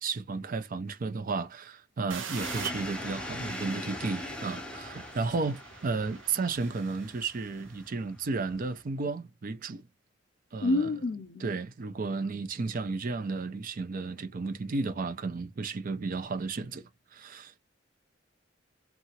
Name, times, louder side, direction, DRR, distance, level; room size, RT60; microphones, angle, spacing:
voice 1, 0.0-9.9 10.5-10.9 11.4-17.5, right 4 dB, 45° right, 0.5 m, -33 dB
sound 1, 2.1-7.8, right 6 dB, 85° right, 0.7 m, -45 dB
sound 2, 2.4-8.8, left 1 dB, 5° left, 0.6 m, -41 dB
voice 2, 10.6-11.4, left 2 dB, 55° left, 0.5 m, -28 dB
2.8 x 2.4 x 2.8 m
head